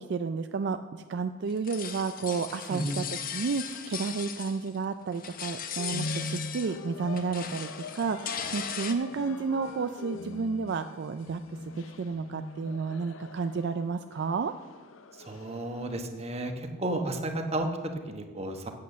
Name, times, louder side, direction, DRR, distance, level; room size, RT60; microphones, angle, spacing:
voice 1, 0.0-3.0 3.3-11.4 11.7-14.5, right 5 dB, 60° right, 9 dB, 0.4 m, -31 dB
sound 1, 1.5-4.8 5.1-6.9 7.1-8.9, left 8 dB, 45° left, 0.8 m, -38 dB
sound 2, 5.8-16.0, left 3 dB, 80° left, 0.6 m, -42 dB
voice 2, 15.2-18.7, right 1 dB, 30° right, 4 dB, 1.1 m, -33 dB
8.6 x 8.3 x 6.8 m, 1.4 s
head